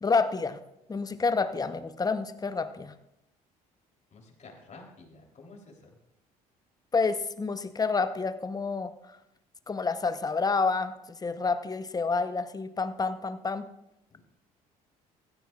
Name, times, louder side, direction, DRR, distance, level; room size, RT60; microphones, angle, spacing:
voice 1, 0.0-0.6 0.9-2.9 6.9-8.9 9.7-10.9 11.2-13.7, left 4 dB, 20° left, 11 dB, 0.8 m, -28 dB
voice 2, 4.1-5.8 14.1-14.2, left 3 dB, 40° left, 0 dB, 3.4 m, -50 dB
15.5 x 13.0 x 2.4 m, 0.82 s
hypercardioid pair, 55°, 19 cm